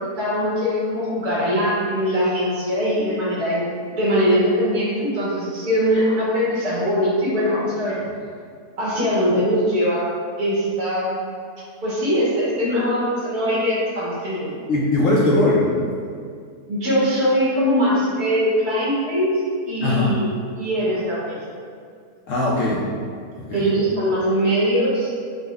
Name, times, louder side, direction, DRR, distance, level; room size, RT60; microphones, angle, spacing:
voice 1, 0.0-8.0 8.8-10.1 10.4-11.2 11.8-14.5 16.7-20.3 20.6-21.4 23.5-25.1, equal, 75° right, -9 dB, 1.9 m, -21 dB
voice 2, 14.7-15.7 19.8-20.1 22.3-22.8 23.4-23.7, left 2 dB, 65° left, -5 dB, 0.8 m, -19 dB
5.3 x 2.1 x 3.3 m, 2.1 s
omnidirectional pair, 1.7 m